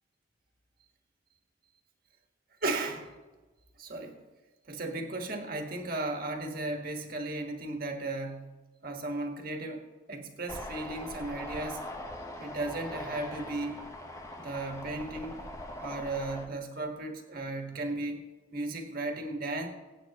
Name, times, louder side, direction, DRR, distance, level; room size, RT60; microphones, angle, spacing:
voice 1, 2.6-3.1 3.8-4.2 4.7-8.5 8.8-11.8 12.4-13.9 14.4-15.4 15.8-19.7, right 2 dB, 50° right, 3 dB, 1.6 m, -35 dB
sound 1, 10.5-16.5, left 1 dB, 20° left, 1.1 m, -41 dB
22.5 x 8.7 x 3.0 m, 1.2 s
head